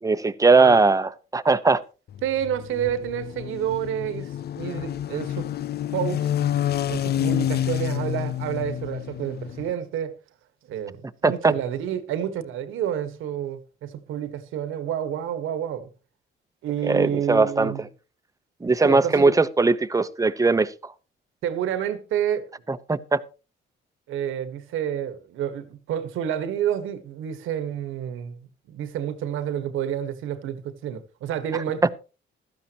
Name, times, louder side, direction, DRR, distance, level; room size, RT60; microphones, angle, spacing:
voice 1, 0.0-1.8 11.2-11.5 16.8-17.7 18.6-20.9 22.7-23.2 31.5-31.6, right 3 dB, 15° right, 0.9 m, -20 dB
sound 1, 2.1-9.7, left 11 dB, 55° left, 0.5 m, -28 dB
voice 2, 2.2-5.5 5.9-6.3 6.9-10.1 10.7-15.9 16.6-17.8 18.8-19.3 21.4-22.5 24.1-31.9, right 10 dB, 90° right, 1.6 m, -29 dB
15.5 x 13.0 x 3.0 m
cardioid pair, 90°, 20 cm